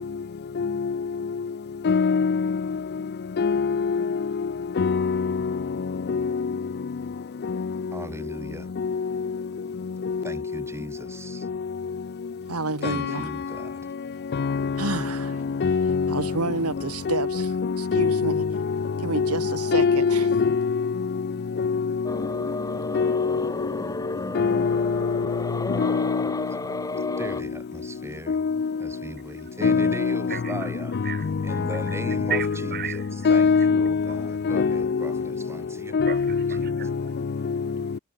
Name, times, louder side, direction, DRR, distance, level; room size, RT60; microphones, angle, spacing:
voice 1, 1.9-2.4 3.4-3.7 4.8-5.1 15.6-16.1 17.9-18.3 19.2-19.3 19.7-20.4 23.0-23.1 24.4-24.9 25.8-26.0 29.6-30.2 32.3-32.4 33.3-33.9 34.5-34.8 35.9-36.2, left 5 dB, 45° left, 0.4 m, -21 dB
voice 2, 7.9-8.7 10.2-11.5 12.8-13.8 27.2-31.0 31.4-36.8, right 1 dB, 10° right, 6.9 m, -38 dB
voice 3, 12.5-13.3 14.8-15.4 16.1-18.4 19.0-20.3, right 3 dB, 85° right, 2.7 m, -30 dB
sound 1, 22.0-27.4, left 2 dB, 15° left, 0.9 m, -32 dB
voice 4, 30.3-30.7 31.0-31.3 32.3-33.3 36.1-38.0, right 8 dB, 45° right, 1.7 m, -35 dB
head